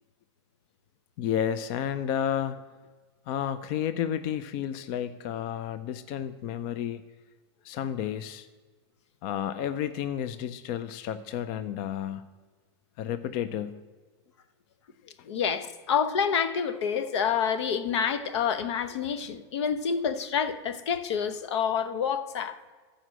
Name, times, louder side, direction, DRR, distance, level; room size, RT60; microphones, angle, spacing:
voice 1, 1.2-2.6 3.3-7.0 7.6-8.5 9.2-12.2 13.0-13.8, left 9 dB, 40° left, 0.4 m, -31 dB
voice 2, 15.3-22.6, left 7 dB, 80° left, 0.8 m, -28 dB
14.0 x 5.0 x 6.2 m
supercardioid pair, 155°, 14 cm